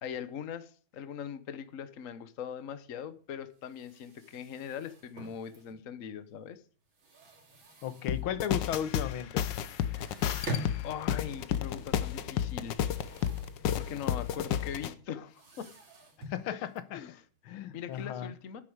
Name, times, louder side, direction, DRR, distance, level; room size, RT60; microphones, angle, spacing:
voice 1, 0.0-6.6 9.9-10.3 10.8-12.9 13.7-15.7 16.5-16.7 16.9-18.6, left 8 dB, 45° left, 1.3 m, -41 dB
sound 1, 2.8-2.9 3.1-3.2 3.5-6.1 6.5-8.6 8.9-9.0 9.3-9.4 9.8-18.0, right 1 dB, 70° right, 3.7 m, -46 dB
voice 2, 7.8-9.4 16.3-17.0 17.5-18.3, left 10 dB, 85° left, 1.8 m, -35 dB
sound 2, 8.1-14.9, left 9 dB, 65° left, 1.5 m, -32 dB
10.0 x 8.2 x 7.9 m
omnidirectional pair, 2.2 m